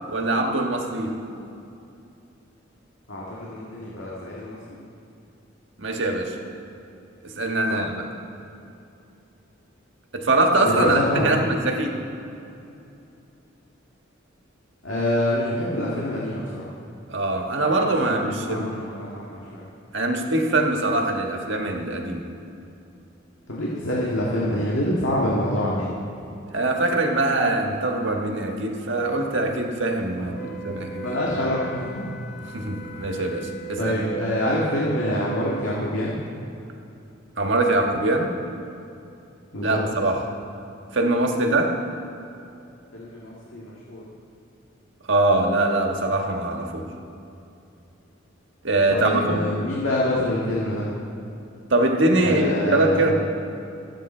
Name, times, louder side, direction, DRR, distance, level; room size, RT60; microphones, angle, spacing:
voice 1, 0.1-1.2 5.8-6.4 7.2-8.0 10.1-12.0 17.1-18.7 19.9-22.3 26.5-31.1 31.4-31.5 32.5-34.0 37.4-38.3 39.6-40.3 40.9-41.8 45.1-46.9 48.6-49.5 51.7-53.2, right 2 dB, 65° right, 2 dB, 1.6 m, -23 dB
voice 2, 3.1-4.6 7.7-7.8 10.6-11.4 14.8-16.7 18.1-19.7 23.5-25.9 30.2-30.5 31.0-32.2 33.8-36.2 39.5-39.8 42.9-44.0 48.9-50.9 52.2-53.1, left 1 dB, 80° left, -5 dB, 2.1 m, -26 dB
Wind instrument woodwind instrument, 30.3-35.8, right 6 dB, 55° left, 0.9 m, -36 dB
26.0 x 9.0 x 4.4 m, 2.7 s
head